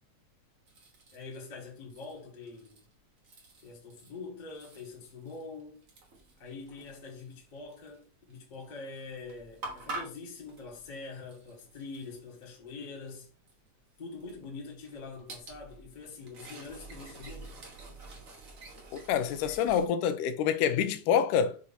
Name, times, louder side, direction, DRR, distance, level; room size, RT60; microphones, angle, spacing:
sound 1, 0.7-1.5 1.9-2.9 3.2-4.2 4.5-8.0 8.3-8.5 8.9-12.6 13.1-13.2 13.5-13.6 14.1-19.8, right 2 dB, 65° right, 0.8 m, -47 dB
voice 1, 1.1-2.8 3.6-5.8 6.4-13.3 14.0-17.6, left 4 dB, 30° left, 0.9 m, -44 dB
voice 2, 18.9-21.6, left 8 dB, 85° left, 2.2 m, -27 dB
6.3 x 2.7 x 5.6 m
omnidirectional pair, 3.8 m